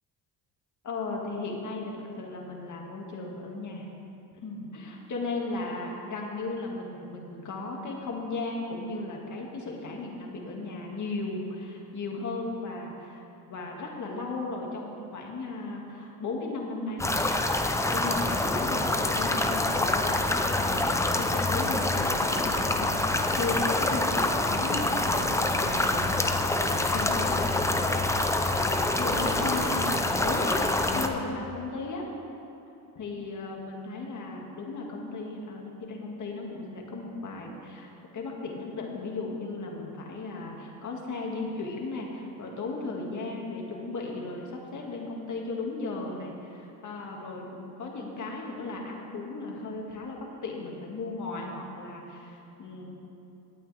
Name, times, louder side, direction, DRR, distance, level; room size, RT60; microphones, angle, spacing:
voice 1, 0.8-3.9 4.4-17.2 17.9-22.9 23.4-28.1 29.0-32.0 33.0-53.0, left 3 dB, 45° left, -1 dB, 2.3 m, -36 dB
sound 1, 17.0-31.1, left 2 dB, 5° left, 0.7 m, -26 dB
17.5 x 8.7 x 3.5 m, 2.9 s
supercardioid pair, 90°, 41 cm